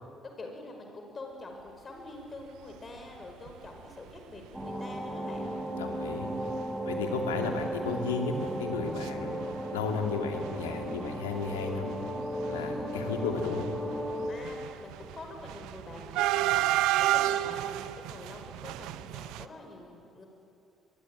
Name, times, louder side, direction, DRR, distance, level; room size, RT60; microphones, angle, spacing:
voice 1, 0.4-5.5 12.6-12.9 14.3-20.3, left 2 dB, 35° left, 3 dB, 5.7 m, -46 dB
sound 1, 3.5-3.7 4.2-4.3 4.4-4.6 5.4-5.5 5.9-6.1 6.4-6.5 6.9-9.1 9.3-10.1 10.3-19.5, right 15 dB, 65° right, 0.7 m, -32 dB
sound 2, 4.5-14.3, equal, 15° right, 6.8 m, -35 dB
voice 2, 5.8-6.3 6.8-9.4 9.7-11.9 12.5-13.6, left 5 dB, 80° left, 4 dB, 2.6 m, -33 dB
26.5 x 22.0 x 9.2 m, 2.6 s
figure-of-eight pair, 45°, 0 cm